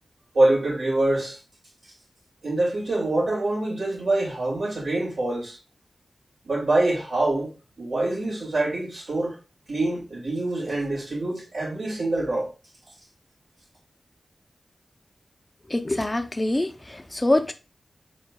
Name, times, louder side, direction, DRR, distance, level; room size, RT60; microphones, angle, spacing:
voice 1, 0.3-1.4 2.4-5.6 6.4-7.5 7.8-9.3 9.7-12.5, right 2 dB, 75° right, 2.4 m, -25 dB
voice 2, 15.7-17.5, left 1 dB, 30° left, 0.6 m, -24 dB
4.3 x 4.3 x 2.3 m
cardioid pair, 40°, 0 cm